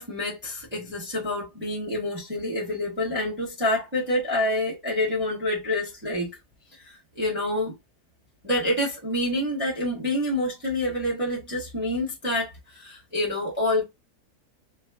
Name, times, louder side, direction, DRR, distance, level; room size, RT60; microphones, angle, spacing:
voice 1, 0.0-6.4 7.1-7.7 8.4-13.8, left 1 dB, 10° right, 0.9 m, -27 dB
3.3 x 2.3 x 2.2 m
omnidirectional pair, 1.8 m